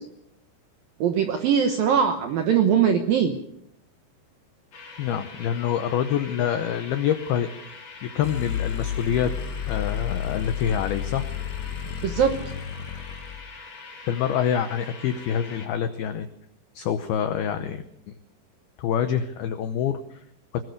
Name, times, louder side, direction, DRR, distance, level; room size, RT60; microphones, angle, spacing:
voice 1, 1.0-3.4 12.0-12.3, right 8 dB, 75° right, 5 dB, 2.1 m, -21 dB
sound 1, 4.7-15.7, left 4 dB, 45° left, 4.8 m, -43 dB
voice 2, 5.0-7.8 8.0-9.3 9.7-11.2 14.1-16.3 16.8-17.8 18.8-20.2, left 9 dB, 85° left, 9 dB, 2.2 m, -26 dB
sound 2, 8.2-13.4, left 9 dB, 65° left, 2.3 m, -31 dB
21.5 x 20.0 x 6.6 m, 0.75 s
omnidirectional pair, 5.8 m